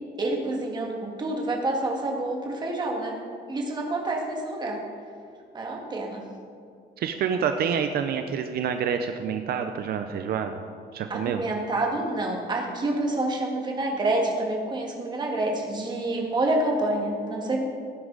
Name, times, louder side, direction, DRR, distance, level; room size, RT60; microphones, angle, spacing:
voice 1, 0.2-3.2 3.5-4.8 5.5-6.2 11.1-17.6, right 2 dB, 25° right, 0 dB, 1.9 m, -28 dB
voice 2, 7.0-10.6 10.9-11.4, right 7 dB, 70° right, 7 dB, 0.7 m, -27 dB
17.0 x 9.6 x 4.0 m, 2.3 s
cardioid pair, 165°, 17 cm